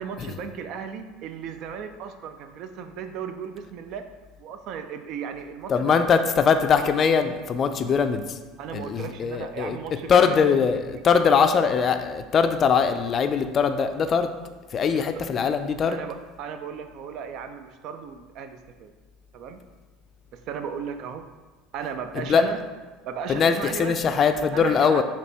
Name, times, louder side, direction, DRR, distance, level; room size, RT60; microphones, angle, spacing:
voice 1, 0.0-4.0 4.4-6.0 8.6-10.4 11.2-11.6 14.9-15.1 15.9-18.9 19.3-19.6 20.3-21.3 21.7-22.6 23.0-24.0 24.5-25.0, right 7 dB, 60° right, 8 dB, 0.3 m, -35 dB
voice 2, 5.7-8.4 8.7-9.8 10.1-14.3 14.7-16.0 22.1-22.5 23.3-25.0, left 6 dB, 40° left, 8 dB, 0.3 m, -21 dB
4.1 x 2.9 x 3.3 m, 1.3 s
hypercardioid pair, 80°, 0 cm